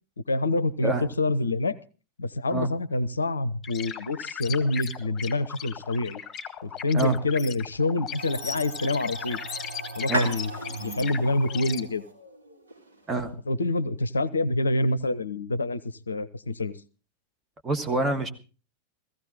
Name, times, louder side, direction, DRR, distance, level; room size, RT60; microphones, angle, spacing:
voice 1, 0.3-1.8 2.2-6.2 6.6-9.4 10.0-10.5 10.8-12.0 13.5-15.8 16.1-16.7, left 2 dB, 75° left, 18 dB, 0.6 m, -26 dB
sound 1, 3.6-11.8, left 7 dB, 25° left, 1.6 m, -37 dB
sound 2, 8.2-13.2, right 1 dB, 75° right, 3.8 m, -37 dB
voice 2, 17.6-18.3, right 2 dB, 15° right, 6 dB, 1.6 m, -26 dB
16.0 x 15.5 x 4.0 m, 0.35 s
figure-of-eight pair, 90°, 0 cm